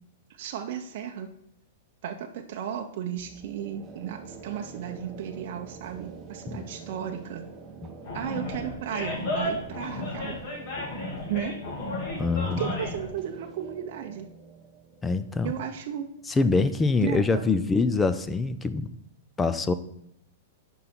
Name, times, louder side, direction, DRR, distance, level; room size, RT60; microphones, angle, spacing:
voice 1, 0.3-1.3 2.0-7.5 8.1-10.4 11.3-11.6 12.5-14.3 15.4-16.1 17.0-17.6, right 9 dB, 45° right, 2 dB, 0.7 m, -34 dB
sound 1, 3.2-16.8, right 5 dB, 15° right, 0.8 m, -46 dB
Animal, 8.0-13.1, left 2 dB, 40° left, 2.2 m, -33 dB
voice 2, 12.2-12.7 15.0-15.5 16.4-18.9 19.4-19.7, left 3 dB, 10° left, 12 dB, 0.3 m, -24 dB
9.9 x 5.4 x 4.4 m, 0.76 s
supercardioid pair, 165°, 0 cm